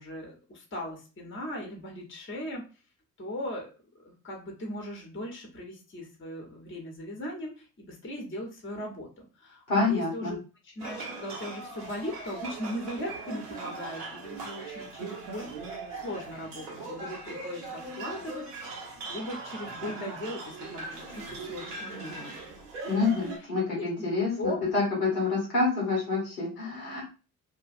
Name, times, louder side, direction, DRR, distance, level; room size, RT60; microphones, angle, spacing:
voice 1, 0.0-2.6 3.2-3.7 4.0-10.4 10.6-18.5 19.1-22.4 23.7-23.8 24.4-24.6 25.2-25.4, left 1 dB, 25° left, 0 dB, 1.1 m, -38 dB
voice 2, 9.7-10.3 22.9-27.0, left 3 dB, 85° left, -4 dB, 1.3 m, -27 dB
sound 1, 10.8-23.4, right 3 dB, 80° right, 0.8 m, -40 dB
2.7 x 2.5 x 2.5 m, 0.33 s
figure-of-eight pair, 45°, 47 cm